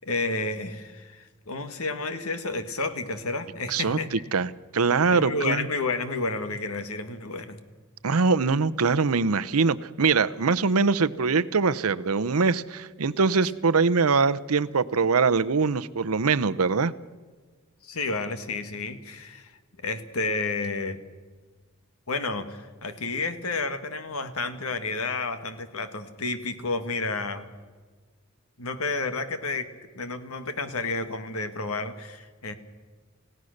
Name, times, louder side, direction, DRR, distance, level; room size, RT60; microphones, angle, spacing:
voice 1, 0.0-4.1 5.1-7.6 17.8-19.5 19.8-21.0 22.1-27.4 28.6-29.7 30.0-32.5, left 3 dB, 75° left, 9 dB, 1.8 m, -31 dB
voice 2, 3.7-5.7 8.0-16.9, right 4 dB, 80° right, 14 dB, 0.7 m, -23 dB
29.5 x 17.0 x 6.6 m, 1.4 s
head